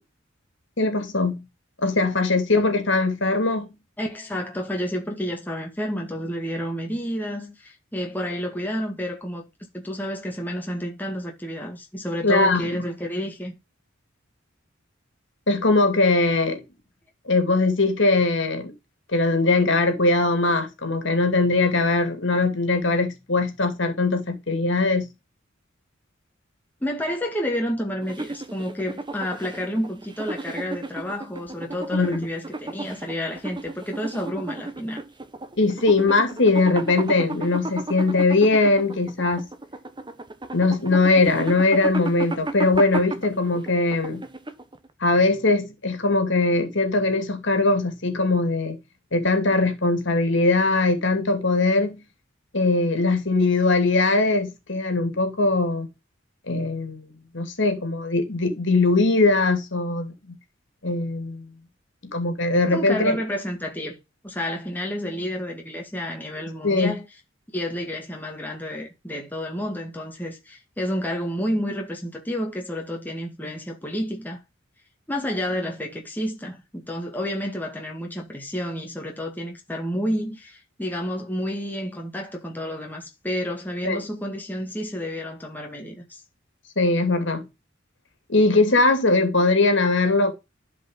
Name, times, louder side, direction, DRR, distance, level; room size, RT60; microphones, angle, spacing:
voice 1, 0.8-1.4 1.8-3.7 12.2-12.9 15.5-16.6 17.3-18.7 19.1-25.0 31.9-32.3 35.6-39.5 40.5-44.2 45.0-48.8 49.1-52.0 52.5-55.9 56.5-60.4 60.8-61.5 62.1-63.2 66.6-67.0 83.8-84.0 86.8-87.4 88.3-90.3, left 3 dB, 65° left, 2.5 m, -21 dB
voice 2, 4.0-9.4 9.7-13.5 26.8-35.0 62.7-64.0 64.2-67.1 67.5-74.4 75.1-86.2, equal, 10° left, 2.0 m, -30 dB
sound 1, 28.0-44.9, right 2 dB, 25° right, 1.0 m, -34 dB
11.5 x 5.3 x 4.0 m
head